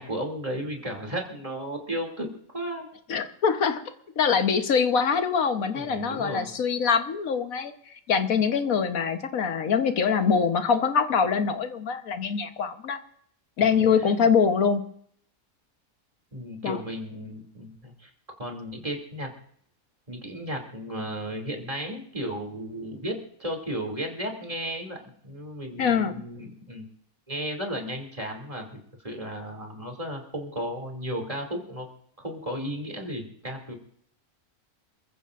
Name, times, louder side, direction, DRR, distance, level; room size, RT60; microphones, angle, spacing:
voice 1, 0.0-2.9 5.7-6.5 13.7-14.2 16.3-18.1 18.4-19.3 20.1-26.9 27.3-28.7 29.0-31.9 32.2-33.7, equal, 25° right, 1 dB, 2.8 m, -34 dB
voice 2, 3.1-3.8 4.2-13.0 13.6-14.8 16.6-16.8 25.8-26.1, left 6 dB, 75° left, 7 dB, 1.5 m, -24 dB
28.0 x 15.0 x 2.6 m, 0.65 s
omnidirectional pair, 1.5 m